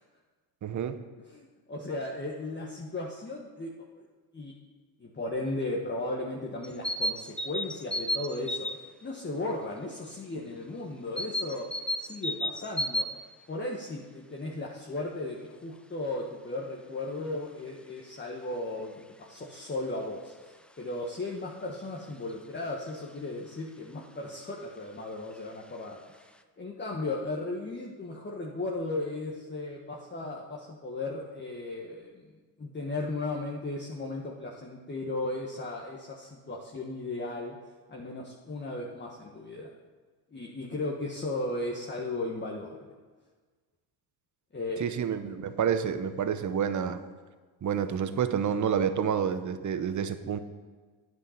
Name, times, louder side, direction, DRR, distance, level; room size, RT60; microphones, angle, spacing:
voice 1, 0.6-1.0 44.8-47.0 47.6-50.4, right 8 dB, 35° right, 11 dB, 0.9 m, -29 dB
voice 2, 1.3-4.1 4.3-4.5 5.0-11.7 12.0-13.1 13.5-26.3 26.6-32.2 32.6-37.6 37.9-39.7 40.3-42.8 44.5-44.9, left 2 dB, 20° left, -2 dB, 1.4 m, -36 dB
sound 1, 6.6-8.9 11.2-13.1, left 1 dB, 5° left, 0.3 m, -32 dB
9.6 x 7.7 x 5.8 m, 1.4 s
supercardioid pair, 80°, 49 cm